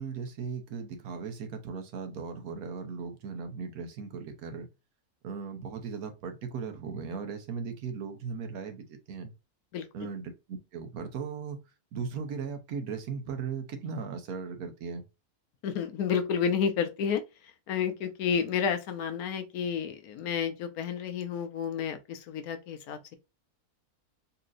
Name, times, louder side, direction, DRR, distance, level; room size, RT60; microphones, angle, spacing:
voice 1, 0.0-4.7 5.2-9.3 9.9-11.6 11.9-15.0, right 5 dB, 85° right, 1.3 m, -37 dB
voice 2, 15.6-17.2 17.7-23.2, left 7 dB, 85° left, 1.2 m, -30 dB
4.2 x 2.9 x 2.4 m
omnidirectional pair, 1.5 m